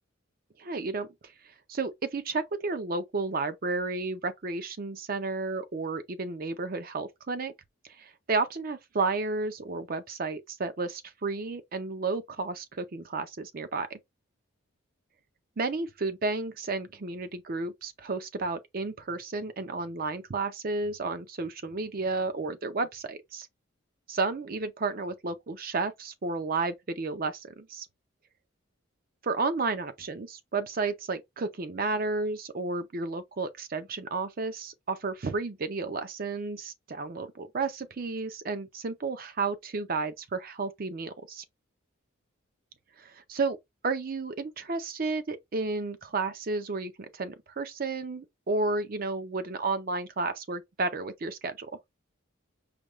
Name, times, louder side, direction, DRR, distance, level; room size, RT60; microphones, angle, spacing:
voice 1, 0.6-1.1 1.7-7.5 8.0-14.0 15.6-23.5 24.1-27.9 29.2-41.4 43.0-43.6 43.8-51.7, right 3 dB, 45° right, 0.5 m, -32 dB
5.0 x 2.3 x 3.0 m
head